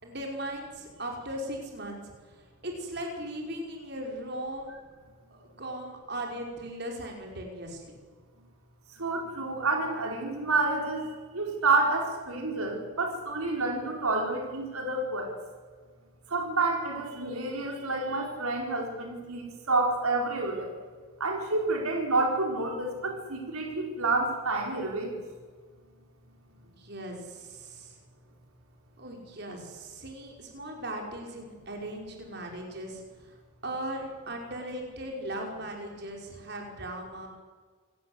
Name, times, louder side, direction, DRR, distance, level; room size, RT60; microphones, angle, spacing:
voice 1, 0.0-2.0 2.3-2.4 2.6-4.7 5.3-7.9 26.6-28.0 29.0-33.4 33.6-37.3, right 1 dB, 50° right, 1 dB, 5.1 m, -38 dB
voice 2, 9.0-15.3 16.3-20.7 21.2-25.1, right 3 dB, 90° right, 2 dB, 4.7 m, -29 dB
27.5 x 18.0 x 8.1 m, 1.5 s
head